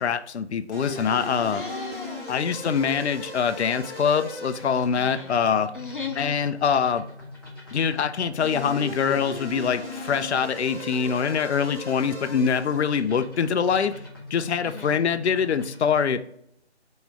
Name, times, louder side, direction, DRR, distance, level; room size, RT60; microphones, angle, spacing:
voice 1, 0.0-1.6 2.3-5.7 6.2-7.0 7.7-13.9 14.3-16.2, left 7 dB, 70° left, 10 dB, 0.5 m, -24 dB
sound 1, 0.7-16.1, left 2 dB, 20° left, 1.1 m, -39 dB
voice 2, 1.1-2.3 4.9-5.3 5.7-6.4 14.6-15.0, left 4 dB, 50° left, 1 dB, 0.8 m, -37 dB
3.8 x 3.1 x 4.5 m, 0.72 s
figure-of-eight pair, 170°, 34 cm